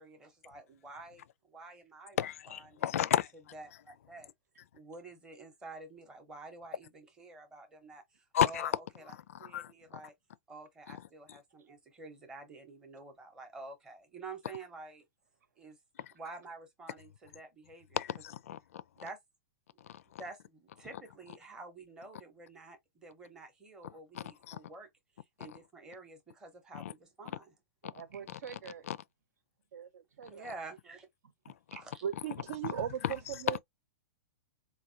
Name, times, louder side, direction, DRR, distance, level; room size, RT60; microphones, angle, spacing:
voice 1, 0.0-2.2 2.5-2.8 3.5-4.3 4.7-9.1 9.4-10.1 10.5-15.1 15.6-15.8 16.1-18.0 19.0-19.2 20.2-24.9 25.4-27.5 30.3-31.1 31.7-32.0, right 3 dB, 5° right, 0.7 m, -49 dB
voice 2, 2.2-3.3 8.3-8.7 9.3-9.7 10.9-11.0 11.3-11.4 16.0-16.1 17.9-18.8 19.9-20.2 24.1-24.6 25.5-25.6 26.7-26.9 27.8-27.9 28.9-29.0 32.6-33.1 33.5-33.6, left 10 dB, 55° left, 0.4 m, -33 dB
voice 3, 27.8-28.9 29.7-30.5 31.5-31.6, right 8 dB, 75° right, 1.1 m, -48 dB
voice 4, 32.0-33.6, right 10 dB, 60° right, 0.4 m, -36 dB
4.6 x 2.2 x 2.6 m
supercardioid pair, 175°, 9 cm